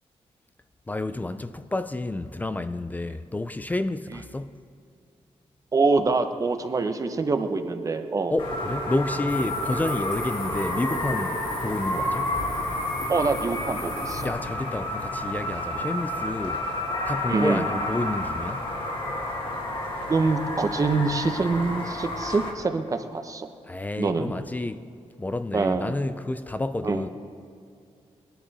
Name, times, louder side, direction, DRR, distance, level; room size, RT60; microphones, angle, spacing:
voice 1, 0.9-4.6 8.3-12.4 14.2-16.6 17.1-18.7 23.7-24.9 25.2-27.1, left 2 dB, 15° left, 0.4 m, -30 dB
voice 2, 5.7-8.3 13.1-14.3 17.3-17.6 20.1-23.5 24.0-24.3 25.5-25.9 26.8-27.0, right 3 dB, 30° right, 0.8 m, -25 dB
sound 1, 7.0-15.4, right 5 dB, 65° right, 1.1 m, -40 dB
sound 2, 8.4-22.5, left 1 dB, 50° left, 1.8 m, -30 dB
sound 3, 9.3-14.3, left 1 dB, 85° left, 4.3 m, -39 dB
21.0 x 10.5 x 4.1 m
wide cardioid pair, 135°, 11 cm